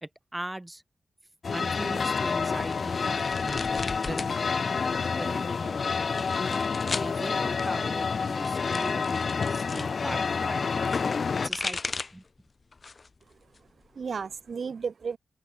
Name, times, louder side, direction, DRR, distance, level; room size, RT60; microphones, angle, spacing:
voice 1, 0.0-0.8 1.5-4.4 5.1-5.8 7.0-11.0 11.4-11.8 12.1-12.2, right 1 dB, 10° right, 1.4 m, -39 dB
sound 1, 1.4-11.5, left 5 dB, 55° left, 0.5 m, -28 dB
sound 2, 2.6-4.3 4.7-5.3 6.0-7.1 8.2-9.9 11.2-12.3 12.7-13.2 13.5-14.5, left 4 dB, 40° left, 1.5 m, -37 dB
voice 2, 13.3-15.2, right 5 dB, 60° right, 1.9 m, -35 dB
wide cardioid pair, 105°, 0 cm